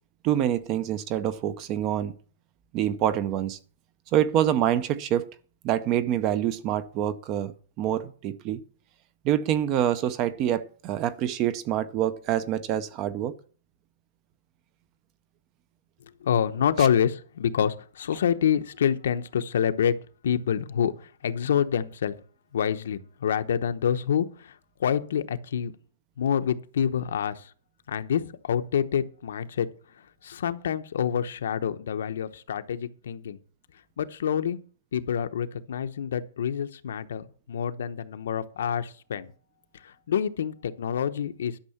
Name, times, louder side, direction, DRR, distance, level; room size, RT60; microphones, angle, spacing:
voice 1, 0.2-2.1 2.7-3.6 4.1-5.3 5.6-8.6 9.2-13.3 16.8-16.9, right 11 dB, 20° right, 0.6 m, -26 dB
voice 2, 16.2-19.9 20.2-22.1 22.5-25.7 26.2-27.5 27.9-29.7 30.2-33.4 34.0-34.6 34.9-39.3 39.8-41.6, left 8 dB, 70° left, 1.0 m, -27 dB
11.5 x 6.6 x 7.1 m
hypercardioid pair, 180°, 0 cm